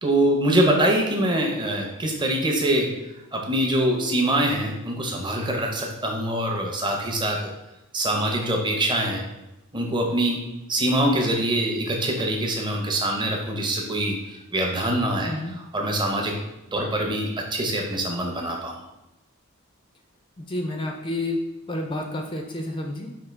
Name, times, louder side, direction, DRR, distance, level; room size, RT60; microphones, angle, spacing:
voice 1, 0.0-2.9 3.3-7.5 7.9-9.2 9.7-10.4 10.7-16.3 16.7-18.8, right 1 dB, 20° right, 1 dB, 0.6 m, -24 dB
voice 2, 20.4-21.4 21.7-23.1, left 1 dB, 20° left, 3 dB, 0.4 m, -30 dB
5.0 x 2.6 x 3.3 m, 0.95 s
head